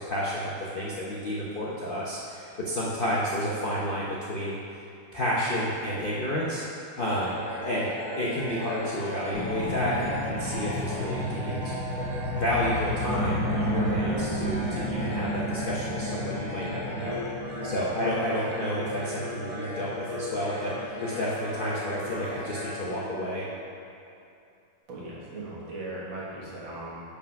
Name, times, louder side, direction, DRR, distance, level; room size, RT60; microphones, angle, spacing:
voice 1, 0.1-4.6 5.1-6.6 7.0-12.1 12.3-17.2 17.6-23.4, equal, 55° left, -6 dB, 0.6 m, -31 dB
sound 1, 7.0-23.7, left 1 dB, 25° right, 1.2 m, -37 dB
sound 2, 9.3-22.0 22.5-22.6, equal, 40° left, 1.8 m, -33 dB
voice 2, 24.9-27.0, right 2 dB, 75° right, -6 dB, 2.2 m, -38 dB
5.7 x 5.0 x 5.7 m, 2.6 s
omnidirectional pair, 2.1 m